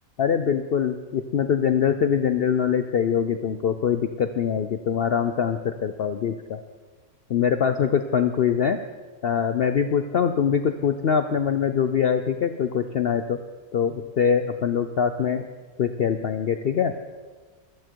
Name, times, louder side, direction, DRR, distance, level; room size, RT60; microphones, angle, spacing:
voice 1, 0.2-6.6 7.3-8.8 9.2-13.4 13.7-15.4 15.8-17.0, left 7 dB, 65° left, 8 dB, 0.5 m, -23 dB
15.5 x 12.5 x 4.6 m, 1.4 s
omnidirectional pair, 1.6 m